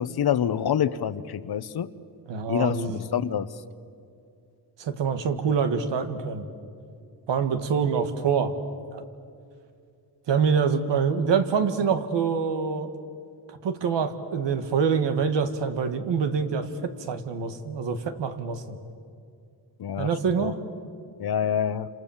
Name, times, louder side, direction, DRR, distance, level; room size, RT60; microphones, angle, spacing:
voice 1, 0.0-1.9 2.5-3.5 19.8-20.5 21.2-21.9, left 9 dB, 65° left, 15 dB, 1.0 m, -27 dB
voice 2, 2.3-3.0 4.8-6.5 7.3-8.5 8.9-9.0 10.3-12.9 13.5-18.8 20.0-20.6, right 6 dB, 85° right, 8 dB, 1.9 m, -25 dB
28.5 x 27.0 x 7.3 m, 2.4 s
wide cardioid pair, 130°, 42 cm